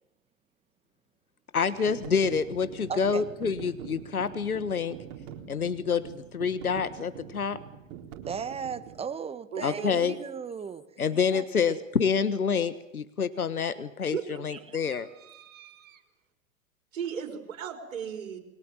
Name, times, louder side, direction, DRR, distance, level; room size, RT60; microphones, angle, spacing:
voice 1, 1.5-5.0 5.5-7.6 9.6-10.2 11.0-15.1, left 6 dB, 80° left, 13 dB, 1.4 m, -27 dB
sound 1, 1.7-9.0, right 9 dB, 45° right, 4.2 m, -44 dB
voice 2, 2.9-3.2 8.3-10.9 11.3-11.8, right 6 dB, 15° right, 12 dB, 1.6 m, -36 dB
voice 3, 9.5-10.1 14.1-16.0 16.9-18.4, right 7 dB, 60° right, 5 dB, 4.6 m, -37 dB
28.5 x 22.5 x 7.3 m, 0.94 s
figure-of-eight pair, 100°, 43 cm